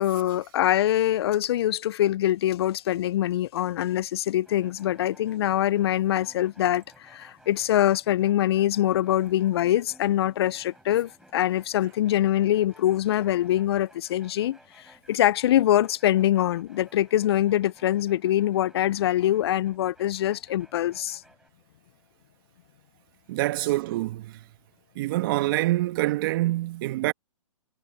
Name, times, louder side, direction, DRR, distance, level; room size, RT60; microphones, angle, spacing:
voice 1, 0.0-14.6 15.1-21.2, left 12 dB, 50° left, 0.5 m, -24 dB
sound 1, 4.4-21.5, right 1 dB, ahead, 4.1 m, -57 dB
voice 2, 23.3-24.4 24.9-27.1, right 17 dB, 40° right, 1.4 m, -26 dB
hypercardioid pair, 140°, 18 cm